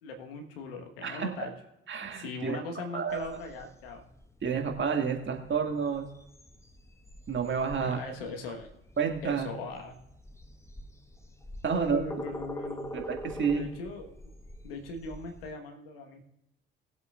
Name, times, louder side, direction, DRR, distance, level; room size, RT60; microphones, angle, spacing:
voice 1, 0.0-1.5 2.1-4.1 7.7-8.7 9.2-10.0 11.7-13.0 13.5-14.1 14.6-16.2, left 3 dB, 80° left, 4 dB, 1.4 m, -39 dB
voice 2, 1.9-2.6 2.9-3.3 4.4-6.1 7.3-8.0 9.0-9.5 11.6-12.0 12.9-13.7, right 6 dB, 40° right, 2 dB, 2.0 m, -30 dB
sound 1, 3.1-15.5, left 1 dB, 10° left, 1.1 m, -45 dB
20.0 x 8.1 x 2.4 m, 0.86 s
figure-of-eight pair, 50°, 29 cm